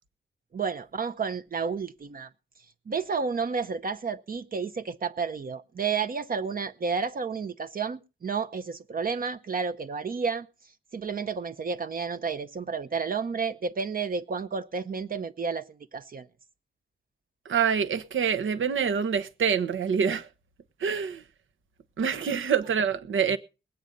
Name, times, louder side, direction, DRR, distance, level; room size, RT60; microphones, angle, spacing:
voice 1, 0.5-2.3 2.9-10.5 10.9-16.3, right 5 dB, 45° right, 0.8 m, -31 dB
voice 2, 17.4-20.3 20.8-21.2 22.0-23.4, right 7 dB, 85° right, 1.2 m, -26 dB
20.0 x 9.1 x 5.3 m
wide cardioid pair, 120°, 20 cm